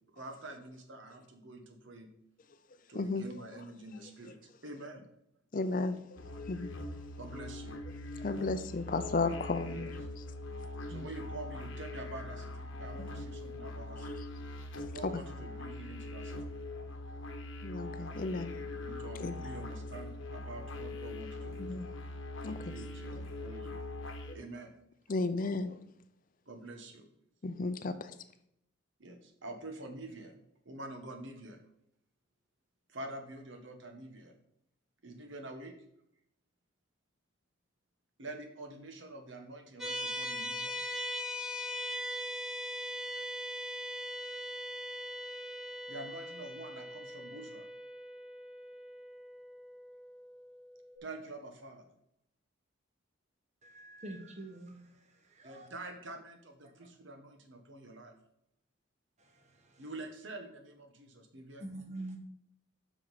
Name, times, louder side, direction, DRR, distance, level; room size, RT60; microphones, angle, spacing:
voice 1, 0.1-2.1 2.9-5.1 7.2-7.8 9.7-9.9 10.9-14.3 14.9-16.4 18.8-21.9 22.5-23.8 24.3-24.7 26.5-27.1 29.0-31.6 32.9-34.3 35.0-35.7 38.2-40.7 45.9-47.7 51.0-51.8 55.4-58.1 59.8-61.6, right 2 dB, 70° right, 5 dB, 1.2 m, -47 dB
voice 2, 5.5-6.2 6.5-6.7 8.2-9.9 10.9-11.1 13.0-13.1 15.0-15.2 17.6-18.8 19.2-19.3 21.6-21.9 22.4-22.7 24.3-24.4 25.1-25.8 27.4-28.1, left 3 dB, 45° left, 11 dB, 0.5 m, -34 dB
sound 1, 6.2-24.3, left 2 dB, 80° left, 1.0 m, -42 dB
sound 2, 39.8-51.0, equal, ahead, 1.1 m, -40 dB
voice 3, 53.6-54.9 55.4-55.7 61.6-62.2, right 1 dB, 35° right, 4 dB, 1.1 m, -44 dB
7.5 x 6.0 x 4.1 m, 0.76 s
head